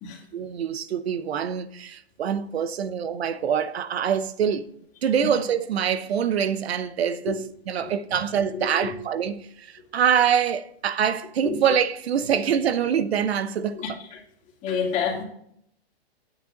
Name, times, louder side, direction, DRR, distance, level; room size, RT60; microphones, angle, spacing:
voice 1, 0.3-4.7 5.0-13.8, right 8 dB, 75° right, 0.9 m, -25 dB
voice 2, 8.5-8.9 11.4-11.6 12.3-12.4 13.7-14.2 14.6-15.2, left 6 dB, 25° left, 2.4 m, -29 dB
9.4 x 8.3 x 3.8 m
hypercardioid pair, 155°, 32 cm